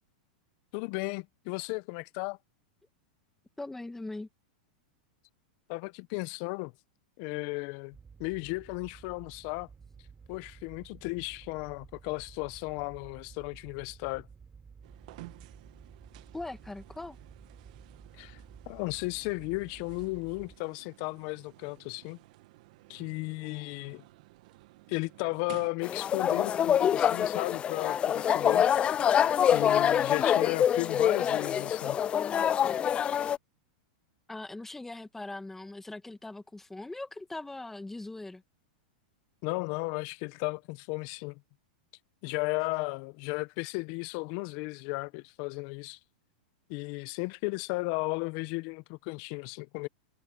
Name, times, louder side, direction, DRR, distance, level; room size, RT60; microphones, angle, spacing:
voice 1, 0.7-2.4 5.7-6.7 7.2-9.7 10.3-14.3 18.2-18.4 18.7-22.2 22.9-24.0 24.9-28.7 29.5-32.0 39.4-41.4 42.2-46.0 46.7-49.9, left 26 dB, 50° left, 1.2 m, -35 dB
voice 2, 3.6-4.3 16.3-17.2 34.3-38.4, left 2 dB, 5° left, 2.1 m, -40 dB
sound 1, 7.9-20.6, right 5 dB, 20° right, 6.1 m, -53 dB
sound 2, 14.8-25.7, right 20 dB, 60° right, 1.8 m, -53 dB
sound 3, 25.8-33.4, left 9 dB, 25° left, 0.4 m, -25 dB
hypercardioid pair, 120°, 4 cm